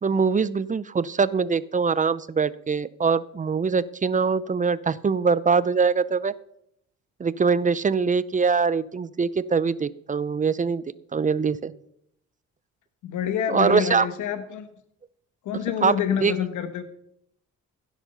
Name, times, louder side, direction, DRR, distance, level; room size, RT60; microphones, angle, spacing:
voice 1, 0.0-6.3 7.2-10.8 11.1-11.7 13.5-14.1 15.8-16.3, right 5 dB, 25° right, 18 dB, 0.5 m, -23 dB
voice 2, 13.0-14.7 15.4-16.8, left 9 dB, 75° left, 9 dB, 1.2 m, -27 dB
16.0 x 7.2 x 5.6 m, 0.74 s
cardioid pair, 90°, 30 cm